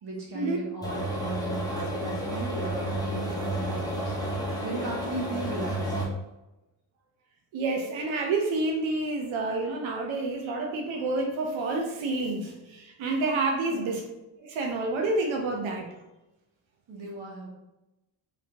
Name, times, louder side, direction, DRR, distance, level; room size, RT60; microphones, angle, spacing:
voice 1, 0.0-4.2 4.6-5.9 13.7-13.9 16.9-17.5, right 1 dB, 60° right, -2 dB, 1.3 m, -37 dB
sound 1, 0.8-6.1, right 1 dB, 10° left, 0.9 m, -31 dB
voice 2, 7.5-14.1 14.4-15.9, right 2 dB, 85° right, 1 dB, 0.7 m, -29 dB
3.4 x 3.2 x 2.8 m, 0.98 s
cardioid pair, 85°, 46 cm